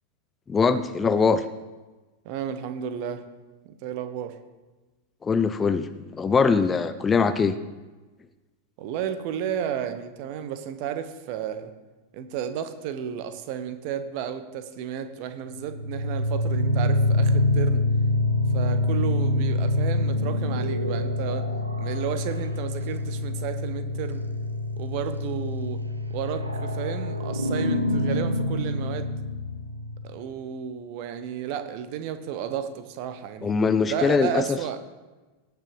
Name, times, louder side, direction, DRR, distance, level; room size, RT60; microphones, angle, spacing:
voice 1, 0.5-1.4 5.2-7.5 33.4-34.6, left 5 dB, 20° left, 11 dB, 0.5 m, -22 dB
voice 2, 2.2-3.2 3.6-4.4 8.8-11.7 12.1-17.8 18.5-21.5 21.8-24.2 24.8-25.8 26.1-29.1 30.0-33.6 33.8-34.8, right 9 dB, 45° right, 9 dB, 1.1 m, -32 dB
sound 1, 15.6-30.2, left 1 dB, 80° right, 1.0 m, -26 dB
17.5 x 5.9 x 4.8 m, 1.2 s
figure-of-eight pair, 90°, 0 cm